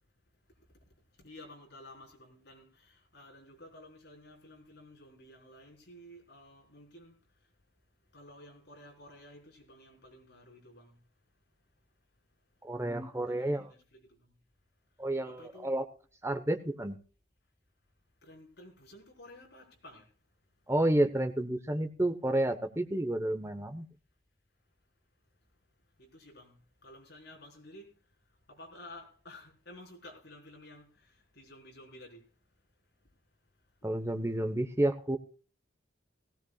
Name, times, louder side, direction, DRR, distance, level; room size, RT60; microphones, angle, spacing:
voice 1, 1.2-7.2 8.1-11.0 13.3-14.3 15.3-15.7 18.2-20.1 26.0-27.9 28.5-32.3, left 1 dB, 60° left, 4.3 m, -53 dB
voice 2, 12.6-13.7 15.0-15.8 16.2-17.0 20.7-23.9 33.8-35.2, right 1 dB, 15° right, 1.0 m, -30 dB
17.5 x 16.5 x 2.4 m
head